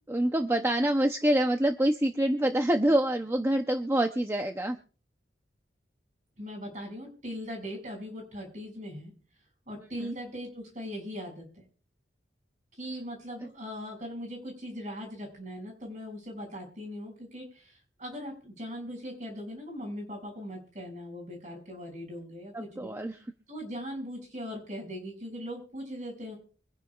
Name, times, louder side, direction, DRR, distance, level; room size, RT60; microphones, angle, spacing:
voice 1, 0.1-4.8 10.0-10.2 22.5-23.2, right 1 dB, 15° right, 5 dB, 0.7 m, -26 dB
voice 2, 6.4-9.1 9.7-11.6 12.8-22.9 23.5-26.4, equal, 45° right, 1 dB, 7.0 m, -40 dB
24.5 x 10.5 x 2.4 m, 0.40 s
head